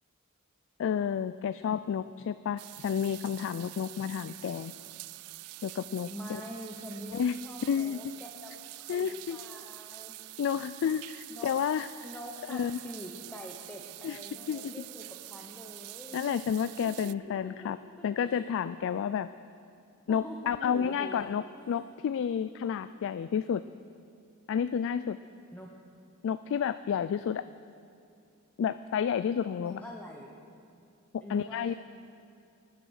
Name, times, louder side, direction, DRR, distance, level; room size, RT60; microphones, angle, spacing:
voice 1, 0.8-4.7 5.6-6.4 7.1-7.4 7.6-8.0 8.9-9.4 10.4-11.9 12.5-12.8 14.0-14.2 14.5-14.7 16.1-17.8 18.0-19.3 20.1-23.6 24.5-25.2 26.2-27.4 28.6-29.8 31.3-31.7, left 7 dB, 60° left, 13 dB, 0.3 m, -30 dB
sound 1, 2.6-17.1, right 19 dB, 75° right, 0.3 m, -46 dB
voice 2, 6.0-8.6 8.9-10.4 11.3-11.5 12.0-16.2 16.8-17.1 18.0-18.4 20.1-21.9 25.5-25.7 29.6-30.3 31.2-31.7, equal, 10° left, -1 dB, 1.0 m, -45 dB
19.5 x 7.4 x 6.4 m, 2.6 s
head